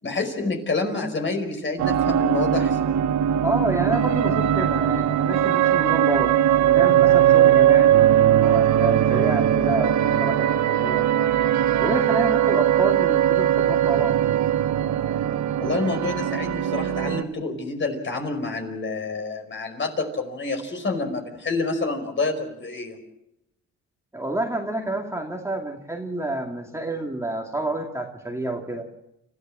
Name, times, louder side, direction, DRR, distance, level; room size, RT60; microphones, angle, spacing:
voice 1, 0.0-2.8 15.6-23.0, left 3 dB, 40° left, 5 dB, 5.1 m, -28 dB
sound 1, 1.8-17.2, right 11 dB, 70° right, 1.0 m, -20 dB
voice 2, 3.4-8.0 8.3-11.1 11.8-14.2 24.1-28.9, right 2 dB, 10° right, 1 dB, 2.4 m, -28 dB
29.5 x 14.0 x 7.5 m, 0.84 s
cardioid pair, 90°, 30 cm